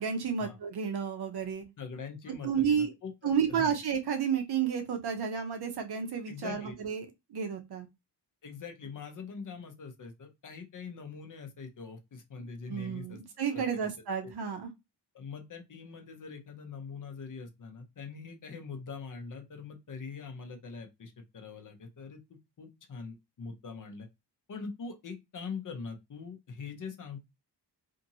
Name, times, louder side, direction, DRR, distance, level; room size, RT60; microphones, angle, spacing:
voice 1, 0.0-1.6 2.4-2.9 3.2-7.9 12.7-14.7, right 7 dB, 65° right, 0.7 m, -31 dB
voice 2, 1.8-3.8 6.3-6.8 8.4-13.2 13.5-13.9 14.2-14.3 15.1-22.2 22.6-24.1 24.5-27.3, left 5 dB, 45° left, 0.7 m, -43 dB
2.7 x 2.6 x 2.7 m
wide cardioid pair, 150°, 43 cm